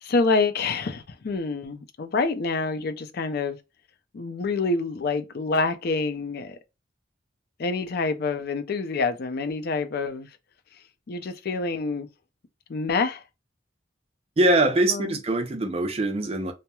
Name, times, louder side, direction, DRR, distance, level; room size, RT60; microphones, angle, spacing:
voice 1, 0.0-3.6 4.1-6.6 7.6-10.3 11.1-12.1 12.7-13.2 14.9-15.2, left 3 dB, 55° left, 0.4 m, -27 dB
voice 2, 14.4-16.5, right 1 dB, 35° right, 0.5 m, -23 dB
2.9 x 2.0 x 2.3 m
head